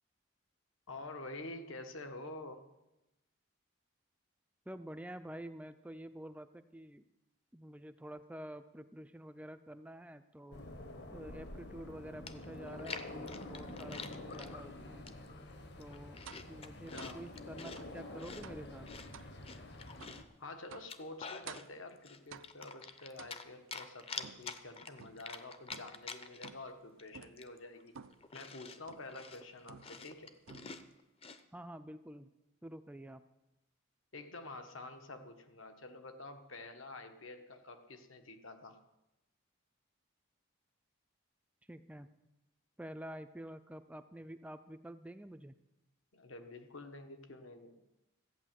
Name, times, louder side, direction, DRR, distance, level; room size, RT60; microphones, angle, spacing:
voice 1, 0.9-2.6 16.9-17.2 20.4-28.0 28.3-30.3 34.1-38.8 46.1-47.8, left 2 dB, 75° left, 7 dB, 1.4 m, -48 dB
voice 2, 4.7-7.0 7.5-10.6 11.1-15.1 15.8-16.2 16.5-18.9 31.5-32.3 32.6-33.2 41.7-42.1 42.8-45.5, right 1 dB, 5° right, 10 dB, 0.4 m, -48 dB
sound 1, 10.5-20.2, left 1 dB, 55° left, 1.2 m, -48 dB
Chewing mastication, 11.9-12.0 12.3-14.5 15.1-15.4 15.8-17.8 18.2-20.3 20.7-21.7 22.0-23.4 23.7-26.7 27.0-27.1 27.4-31.4, left 5 dB, 30° left, 0.6 m, -47 dB
sound 2, 16.2-16.5 17.0-17.2 17.7-18.0 18.4-18.7 19.1-19.3 20.0-20.2 20.7-21.0 21.5-21.8 22.3-22.7 23.2-23.7 24.2-25.3 25.7-26.1 26.4-26.8 27.1-27.4 27.9-28.3 28.9-29.2 29.7-30.2 30.5-30.9, right 7 dB, 70° right, 0.5 m, -53 dB
14.5 x 8.9 x 7.5 m, 0.96 s
head